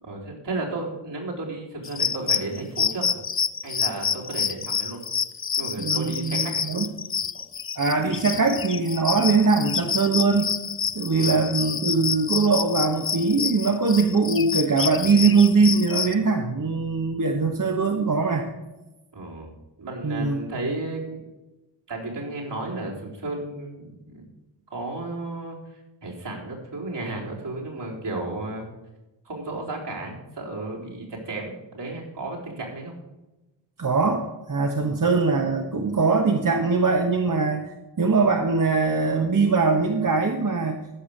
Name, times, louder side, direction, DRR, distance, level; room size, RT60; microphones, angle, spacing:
voice 1, 0.0-3.1 3.6-5.0 5.6-6.6 7.3-7.4 11.3-11.4 19.1-19.5 19.8-21.2 21.9-24.2 24.7-25.6 26.0-28.7 29.2-32.9, right 2 dB, 65° right, -3 dB, 4.0 m, -33 dB
sound 1, 1.8-16.1, left 7 dB, 30° left, 0.5 m, -28 dB
voice 2, 5.8-6.9 7.8-10.5 10.9-18.5 20.0-20.4 33.8-37.6 38.0-40.8, right 4 dB, 45° right, 2 dB, 1.3 m, -22 dB
14.0 x 5.6 x 6.6 m, 1.0 s
cardioid pair, 50°, 45 cm